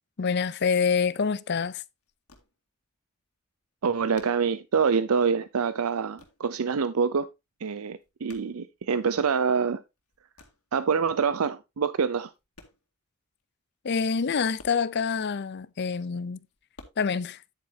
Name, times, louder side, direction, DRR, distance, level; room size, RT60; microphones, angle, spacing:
voice 1, 0.2-1.8 13.8-16.4 17.0-17.4, left 5 dB, 50° left, 0.5 m, -26 dB
sound 1, 1.9-2.9 3.2-3.3 3.5-5.3 5.6-6.5 6.8-7.4 7.7-9.3 9.7-10.8 11.5-11.6 12.2-13.1 13.4-13.5 13.7-13.8 14.1-15.6 16.0-16.8, left 3 dB, 90° left, 2.1 m, -55 dB
voice 2, 3.8-7.3 7.6-9.8 10.7-12.3, right 6 dB, 75° right, 0.5 m, -26 dB
9.8 x 8.4 x 2.7 m
head